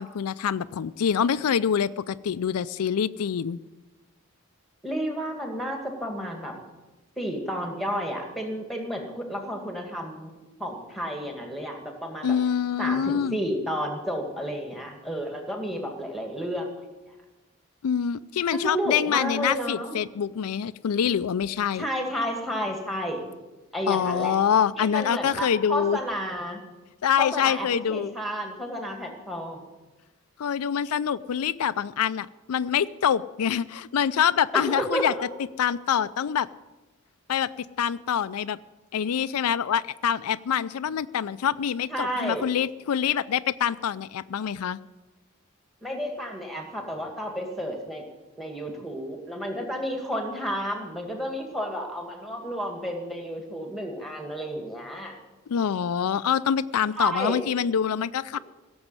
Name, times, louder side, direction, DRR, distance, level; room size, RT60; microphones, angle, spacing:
voice 1, 0.0-3.6 12.2-13.4 17.8-21.9 23.9-26.0 27.0-28.1 30.4-35.1 35.6-36.5 37.3-38.6 38.9-44.8 55.5-58.4, left 8 dB, 85° left, 14 dB, 0.4 m, -25 dB
voice 2, 4.8-6.6 7.2-12.4 12.8-16.7 18.5-20.0 21.8-23.2 23.7-24.4 24.8-26.6 27.2-29.6 34.5-35.1 41.9-42.5 45.8-48.0 48.4-55.2 57.0-57.4, equal, ahead, 3 dB, 2.1 m, -31 dB
17.0 x 7.1 x 9.7 m, 1.1 s
head